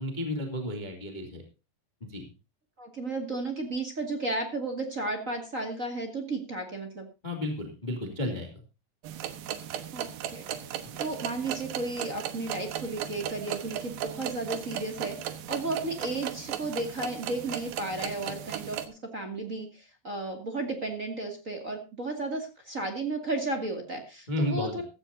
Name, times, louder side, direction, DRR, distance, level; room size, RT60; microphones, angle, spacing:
voice 1, 0.0-1.4 2.0-2.2 7.2-8.6 10.9-11.0 24.3-24.8, left 1 dB, 15° left, 4 dB, 1.8 m, -32 dB
voice 2, 2.8-7.1 9.9-10.4 11.0-15.2 15.5-24.8, right 2 dB, 30° right, 4 dB, 1.4 m, -33 dB
sound 1, 9.0-18.9, right 10 dB, 70° right, 2.7 m, -36 dB
15.5 x 14.5 x 2.7 m, 0.29 s
omnidirectional pair, 5.2 m